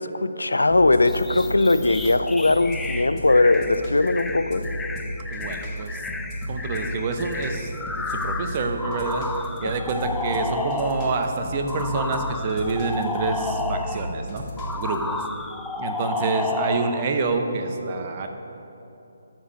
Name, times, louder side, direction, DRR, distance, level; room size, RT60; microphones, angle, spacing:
voice 1, 0.0-4.6 9.6-9.8, left 2 dB, 85° left, 12 dB, 0.4 m, -20 dB
sound 1, 0.7-15.0, left 1 dB, 25° left, 1.6 m, -34 dB
sound 2, 1.1-11.2 11.7-14.1 14.6-17.1, left 3 dB, 5° left, 0.3 m, -32 dB
voice 2, 5.3-6.0 6.5-7.7 8.1-9.3 9.6-15.2 15.8-18.3, right 3 dB, 35° right, 5 dB, 0.8 m, -27 dB
13.5 x 4.7 x 5.2 m, 2.9 s
figure-of-eight pair, 145°, 0 cm